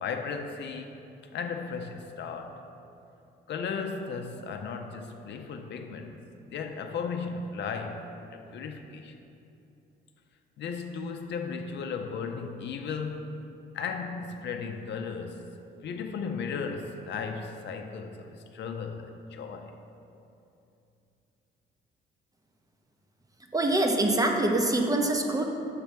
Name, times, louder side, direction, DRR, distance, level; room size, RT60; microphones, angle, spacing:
voice 1, 0.0-0.9 1.3-2.7 3.5-6.2 6.5-9.2 10.6-13.3 13.7-15.5 15.8-19.7, left 5 dB, 60° left, 5 dB, 0.5 m, -35 dB
voice 2, 23.5-25.4, right 2 dB, 20° right, 2 dB, 0.6 m, -24 dB
6.5 x 3.1 x 5.1 m, 2.7 s
cardioid pair, 90°, 20 cm